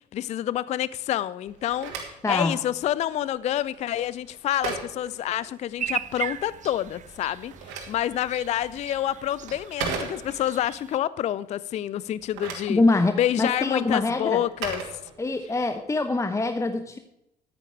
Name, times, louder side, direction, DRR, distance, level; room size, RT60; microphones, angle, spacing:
voice 1, 0.1-12.8 13.2-14.8, left 12 dB, 35° left, 0.4 m, -28 dB
Telephone, 1.5-6.0 7.2-10.6 12.1-15.7, right 5 dB, 60° right, 2.6 m, -38 dB
voice 2, 2.2-2.5 12.7-14.4 15.2-17.0, left 2 dB, 15° left, 0.9 m, -24 dB
sound 1, 5.8-11.0, right 9 dB, 35° right, 0.7 m, -37 dB
13.5 x 8.8 x 4.8 m
figure-of-eight pair, 55°, 21 cm